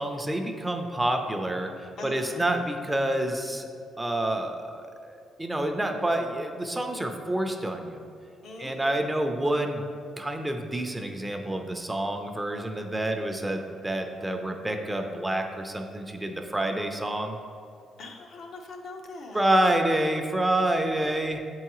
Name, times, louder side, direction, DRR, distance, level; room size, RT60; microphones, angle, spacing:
voice 1, 0.0-3.7 4.0-8.0 8.6-9.8 10.2-17.4 19.3-21.4, right 1 dB, 10° right, 4 dB, 0.5 m, -28 dB
voice 2, 2.0-2.4 8.4-8.9 18.0-19.4, left 2 dB, 65° left, 1 dB, 0.7 m, -41 dB
7.1 x 4.7 x 3.0 m, 2.4 s
cardioid pair, 90°, 0 cm